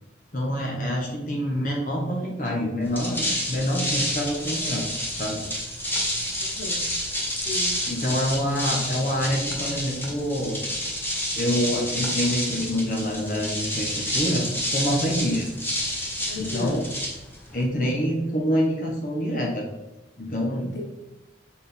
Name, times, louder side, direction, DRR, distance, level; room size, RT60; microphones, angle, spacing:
voice 1, 0.3-4.9 5.2-5.4 7.9-10.6 11.3-15.5 16.3-16.8 17.5-19.7 20.2-20.7, equal, 45° left, -1 dB, 1.1 m, -26 dB
sound 1, 2.8-17.6, equal, 10° left, 1.1 m, -29 dB
voice 2, 6.4-6.9 7.4-7.8 16.3-16.8 20.6-20.8, left 2 dB, 80° left, 0 dB, 1.3 m, -35 dB
6.3 x 4.3 x 3.6 m, 1.0 s
head